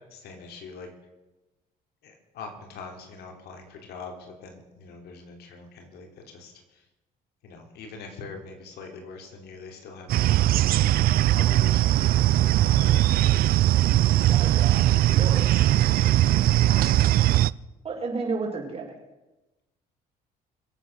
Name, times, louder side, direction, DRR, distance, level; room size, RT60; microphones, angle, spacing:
voice 1, 0.1-0.9 2.0-6.8 7.4-10.8 11.3-13.6 14.9-17.0, left 4 dB, 75° left, 3 dB, 3.5 m, -44 dB
sound 1, 10.1-17.5, right 14 dB, 60° right, 0.4 m, -20 dB
voice 2, 14.3-15.5 17.8-18.9, right 4 dB, 35° right, 0 dB, 6.1 m, -32 dB
25.5 x 8.5 x 6.7 m, 1.0 s
cardioid pair, 110°, 17 cm